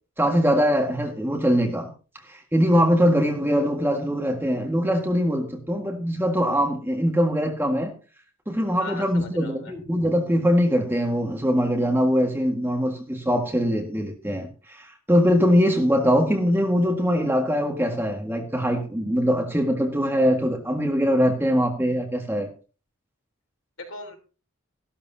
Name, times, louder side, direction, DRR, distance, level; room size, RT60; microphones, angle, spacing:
voice 1, 0.2-1.9 2.3-7.9 8.5-22.5, equal, 10° right, 1.7 m, -22 dB
voice 2, 8.8-9.7 23.8-24.2, left 2 dB, 70° left, 3.7 m, -38 dB
14.0 x 13.0 x 2.8 m
head